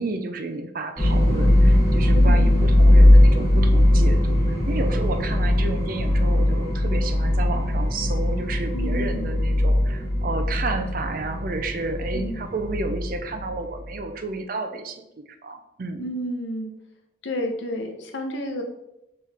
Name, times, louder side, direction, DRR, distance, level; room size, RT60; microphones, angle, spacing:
voice 1, 0.0-16.1, right 3 dB, 45° right, 6 dB, 0.4 m, -31 dB
sound 1, 1.0-13.9, left 1 dB, 15° left, 1.0 m, -19 dB
voice 2, 2.1-2.7 8.7-9.3 12.1-12.4 16.0-16.7 17.2-18.6, equal, 75° left, 5 dB, 0.6 m, -30 dB
4.6 x 3.1 x 3.4 m, 0.89 s
head